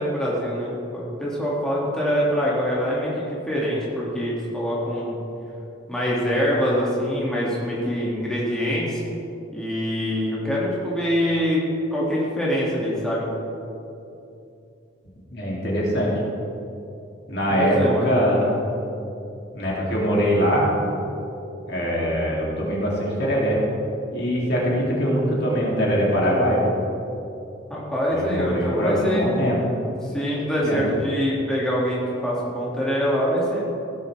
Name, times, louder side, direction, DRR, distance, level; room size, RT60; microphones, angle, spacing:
voice 1, 0.0-5.2 5.9-9.0 9.5-11.6 11.9-13.3 17.5-18.1 27.7-29.3 30.0-33.6, equal, 5° left, -7 dB, 2.0 m, -24 dB
voice 2, 15.3-16.1 17.3-18.6 19.5-20.7 21.7-23.6 24.1-26.7 28.1-29.6 30.6-30.8, equal, 55° left, -4 dB, 2.6 m, -22 dB
16.5 x 9.6 x 3.3 m, 2.7 s
head